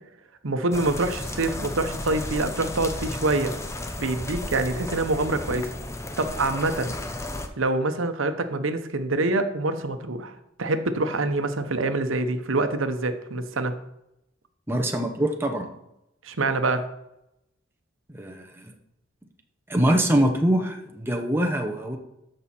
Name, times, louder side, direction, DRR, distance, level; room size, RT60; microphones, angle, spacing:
voice 1, 0.4-3.5 4.0-5.7 6.2-6.9 7.6-13.7 16.2-16.8, right 2 dB, 85° right, 9 dB, 0.9 m, -25 dB
sound 1, 0.7-7.5, left 1 dB, 15° left, 0.6 m, -34 dB
voice 2, 14.7-15.7 18.1-18.7 19.7-22.0, right 1 dB, 10° right, 2 dB, 0.9 m, -24 dB
13.0 x 5.4 x 4.4 m, 0.86 s
head